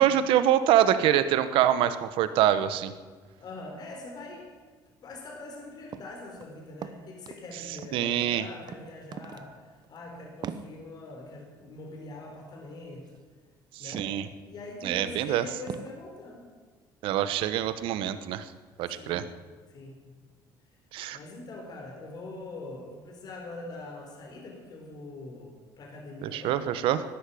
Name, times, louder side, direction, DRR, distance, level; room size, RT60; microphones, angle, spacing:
voice 1, 0.0-2.9 7.9-8.5 13.8-14.3 14.8-15.4 17.0-18.5 18.8-19.2 20.9-21.2 26.2-27.0, right 11 dB, 80° right, 12 dB, 1.1 m, -25 dB
voice 2, 3.4-4.5 5.0-13.2 13.8-14.1 14.4-16.5 18.9-19.2 19.7-20.2 21.1-26.6, left 2 dB, 50° left, 1 dB, 4.2 m, -43 dB
sound 1, 5.9-6.1 6.4-7.4 7.8-8.4 8.7-8.8 9.1-9.5 9.8-10.0 10.4-10.7 13.1-13.2 13.9-14.3 14.8-14.9 15.7-16.0, right 8 dB, 50° right, 0.9 m, -40 dB
12.5 x 10.5 x 9.9 m, 1.4 s
cardioid pair, 105°, 9 cm